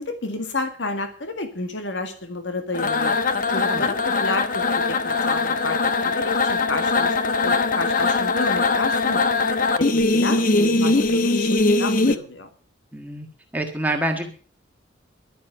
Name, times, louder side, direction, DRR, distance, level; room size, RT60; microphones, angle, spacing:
voice 1, 0.0-3.1 3.5-5.8 6.0-7.2 7.4-9.2 9.8-12.5, left 2 dB, 80° left, 7 dB, 2.0 m, -30 dB
sound 1, 2.7-12.2, left 3 dB, 45° left, 1.0 m, -21 dB
voice 2, 12.9-13.3 13.5-14.3, right 1 dB, 10° right, 2 dB, 1.5 m, -26 dB
12.0 x 9.6 x 6.7 m, 0.40 s
head